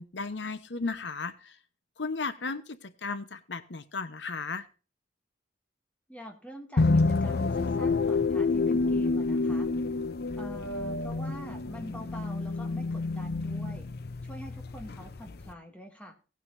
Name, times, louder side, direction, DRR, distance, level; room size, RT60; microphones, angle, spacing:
voice 1, 0.0-1.6 2.0-4.7, left 4 dB, 75° left, 12 dB, 0.9 m, -35 dB
voice 2, 6.1-9.7 10.4-13.9 14.2-16.2, equal, 5° left, 3 dB, 2.4 m, -45 dB
sound 1, 6.8-15.5, left 3 dB, 60° left, 0.6 m, -28 dB
18.0 x 9.3 x 2.6 m, 0.34 s
head